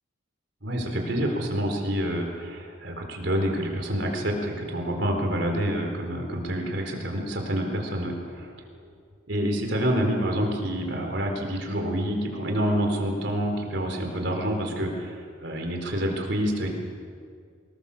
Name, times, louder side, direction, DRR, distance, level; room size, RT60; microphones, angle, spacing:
voice 1, 0.6-8.6 9.3-15.2 15.4-16.7, equal, 60° right, 2 dB, 4.4 m, -27 dB
25.0 x 20.0 x 7.3 m, 2.2 s
head